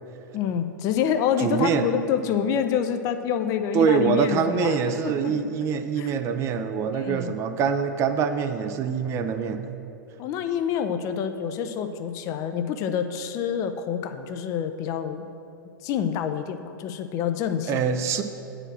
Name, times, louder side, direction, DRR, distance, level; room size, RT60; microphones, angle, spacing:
voice 1, 0.3-5.4 6.0-6.1 6.9-7.3 10.2-15.3 15.8-17.9, left 8 dB, 30° left, 9 dB, 0.5 m, -27 dB
voice 2, 1.4-1.9 3.7-9.7 17.7-18.2, right 6 dB, 25° right, 8 dB, 0.5 m, -24 dB
8.6 x 4.9 x 7.4 m, 2.8 s
figure-of-eight pair, 100°, 11 cm